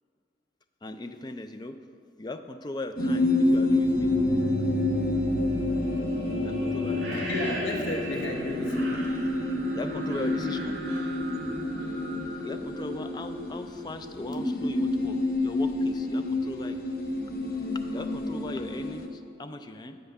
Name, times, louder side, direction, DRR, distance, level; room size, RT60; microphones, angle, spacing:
voice 1, 0.8-1.8 2.2-4.1 6.4-7.3 9.6-10.8 12.4-16.8 17.9-20.0, left 2 dB, 20° left, 8 dB, 0.3 m, -38 dB
sound 1, 3.0-19.1, left 2 dB, 50° left, 0.7 m, -29 dB
sound 2, 3.7-13.5, equal, 55° right, 2.0 m, -36 dB
voice 2, 7.1-9.2 11.4-11.5, left 2 dB, 80° left, 2 dB, 0.9 m, -33 dB
7.9 x 5.7 x 6.5 m, 2.4 s
head